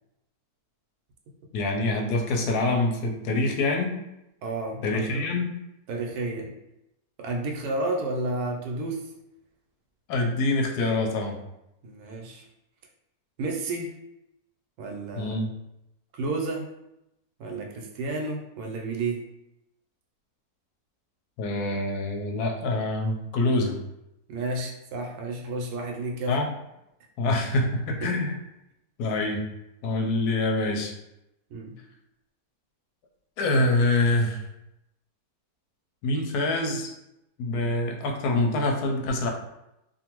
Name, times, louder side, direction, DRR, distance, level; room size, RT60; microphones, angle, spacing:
voice 1, 1.5-3.9 4.8-5.5 10.1-11.4 15.2-15.5 21.4-23.8 26.3-26.5 27.2-28.3 29.0-29.4 29.8-30.9 33.4-34.4 36.0-36.9 37.4-39.3, left 2 dB, 90° left, 2 dB, 1.1 m, -25 dB
voice 2, 4.4-5.3 5.9-6.5 7.2-9.1 11.8-12.5 13.4-13.9 14.8-15.4 16.1-16.7 17.4-19.2 24.3-26.4 31.5-31.8, right 2 dB, 85° right, 1 dB, 1.1 m, -31 dB
2.6 x 2.5 x 2.9 m, 0.87 s
omnidirectional pair, 1.6 m